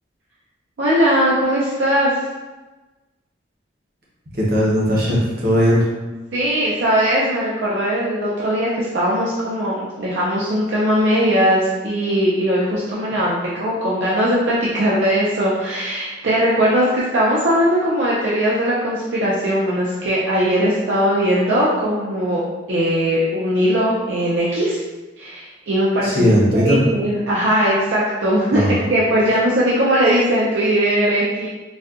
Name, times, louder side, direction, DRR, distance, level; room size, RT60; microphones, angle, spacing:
voice 1, 0.8-2.1 6.3-13.3 13.6-22.4 22.7-24.8 25.2-26.3 26.5-28.6 28.9-31.5, equal, 70° right, -7 dB, 0.5 m, -19 dB
voice 2, 4.3-5.8 26.0-26.8 28.5-28.7, equal, 50° right, -5 dB, 0.9 m, -17 dB
4.1 x 2.2 x 2.4 m, 1.2 s
head